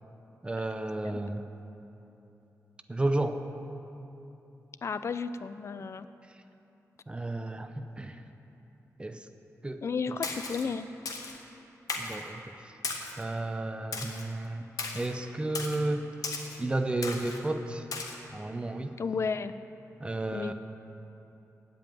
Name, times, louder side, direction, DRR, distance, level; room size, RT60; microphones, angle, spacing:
voice 1, 0.4-1.4 2.9-3.5 7.1-8.2 9.0-9.3 9.6-9.8 12.0-12.7 13.2-14.7 14.9-16.1 16.6-17.9 18.3-18.9 20.0-20.5, right 2 dB, 20° right, 8 dB, 0.7 m, -32 dB
voice 2, 4.8-6.1 9.8-10.9 19.0-19.5 20.3-20.5, left 5 dB, 50° left, 13 dB, 0.4 m, -33 dB
Splash splatter, 10.2-10.6 11.1-11.4 11.9-12.2 12.8-13.2 13.9-14.2 14.8-15.1 15.5-15.8 16.2-16.6 17.0-17.4 17.9-18.2, left 4 dB, 90° left, 1.4 m, -36 dB
16.0 x 5.4 x 9.2 m, 3.0 s
wide cardioid pair, 130°, 6 cm